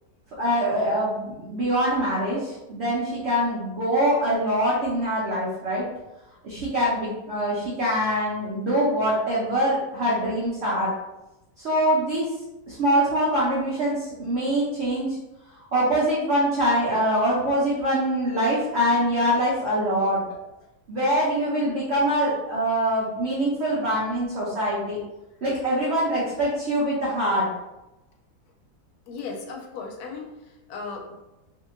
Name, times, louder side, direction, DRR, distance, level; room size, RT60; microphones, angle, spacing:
voice 1, 0.4-5.8 6.4-10.9 11.6-12.3 12.7-15.2 15.5-20.2 20.9-25.0 25.4-27.5, equal, 55° right, -7 dB, 0.7 m, -24 dB
voice 2, 29.1-31.1, left 4 dB, 75° left, 1 dB, 1.0 m, -36 dB
2.7 x 2.6 x 2.5 m, 0.98 s
omnidirectional pair, 1.8 m